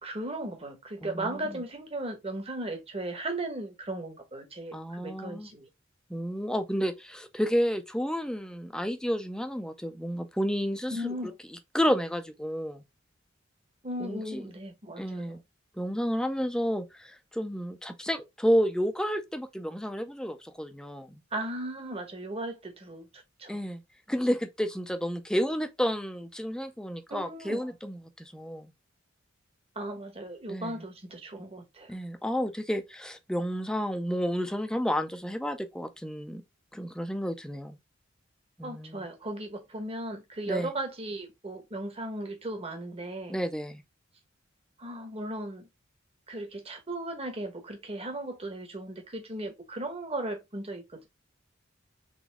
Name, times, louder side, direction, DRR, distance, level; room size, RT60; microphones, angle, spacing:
voice 1, 0.0-5.7 10.9-11.3 13.8-15.4 21.3-23.6 27.1-27.6 29.7-31.9 38.6-43.4 44.8-45.7 46.3-51.1, right 1 dB, 30° right, 1.2 m, -36 dB
voice 2, 1.0-1.6 4.7-5.5 6.1-11.1 11.7-12.8 14.0-14.5 15.0-15.4 15.7-21.2 23.5-23.8 24.1-28.7 30.5-30.8 31.9-36.4 36.7-37.8 38.6-39.1 40.5-40.7 43.3-43.8, equal, 5° left, 0.6 m, -31 dB
4.1 x 3.5 x 3.5 m
head